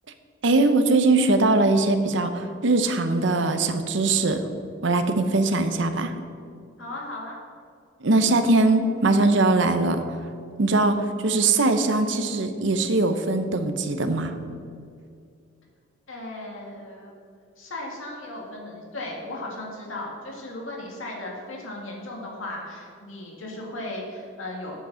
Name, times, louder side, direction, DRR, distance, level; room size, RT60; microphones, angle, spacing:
voice 1, 0.4-4.4 4.8-6.1 8.0-10.0 10.6-14.3, right 2 dB, 65° right, 8 dB, 0.7 m, -21 dB
voice 2, 6.8-7.4 16.1-17.1 17.6-24.8, left 1 dB, 80° left, -2 dB, 2.3 m, -36 dB
7.9 x 7.1 x 6.2 m, 2.3 s
head